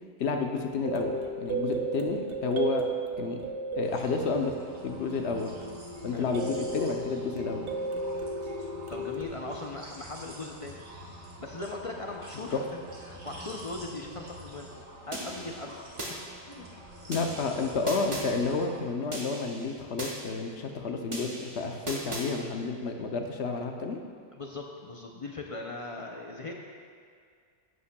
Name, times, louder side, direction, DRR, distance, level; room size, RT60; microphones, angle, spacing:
voice 1, 0.2-2.9 3.2-3.4 3.8-4.5 4.8-5.6 6.0-7.7 12.5-12.6 17.1-24.0, left 4 dB, 70° left, 4 dB, 0.9 m, -30 dB
sound 1, 0.8-5.1 5.6-9.2, right 3 dB, 50° right, 0.7 m, -34 dB
sound 2, 3.8-18.8, right 1 dB, 75° right, 1.5 m, -47 dB
voice 2, 8.9-10.8 11.4-12.8 13.1-14.7 15.1-15.8 16.5-16.7 24.3-26.5, left 2 dB, 45° left, 1 dB, 0.4 m, -39 dB
sound 3, 15.1-16.1 17.1-18.3 19.1-20.1 21.1-22.3, right 1 dB, 25° right, 1.2 m, -38 dB
11.0 x 8.4 x 2.2 m, 2.1 s
omnidirectional pair, 1.2 m